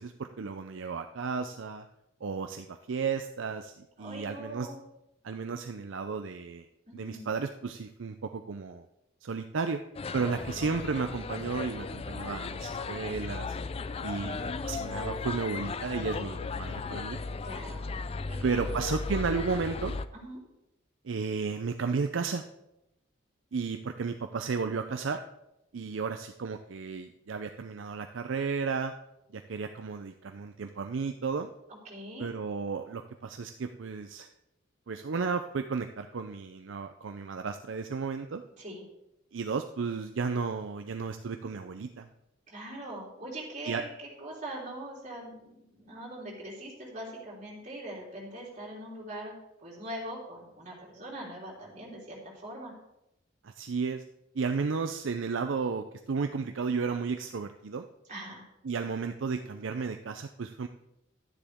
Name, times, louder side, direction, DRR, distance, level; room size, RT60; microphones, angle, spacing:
voice 1, 0.0-1.9 2.2-4.7 5.2-6.7 6.9-8.8 9.2-9.8 10.1-13.6 14.0-17.2 18.4-19.9 21.0-22.4 23.5-25.2 25.7-28.9 29.3-31.5 32.2-34.3 34.9-38.4 39.3-42.1 43.6-43.8 53.4-54.0 54.3-57.9 58.6-60.7, right 5 dB, 70° right, 7 dB, 0.5 m, -33 dB
voice 2, 4.0-4.8 6.9-7.3 10.1-10.4 14.1-14.5 17.4-17.9 18.3-18.7 20.1-20.4 31.7-32.3 38.6-38.8 42.5-43.9 44.2-49.3 49.6-52.7 58.1-58.4, right 1 dB, 40° right, -4 dB, 3.8 m, -42 dB
sound 1, 9.9-20.1, left 4 dB, 30° left, 0.3 m, -36 dB
12.0 x 10.0 x 3.6 m, 0.86 s
head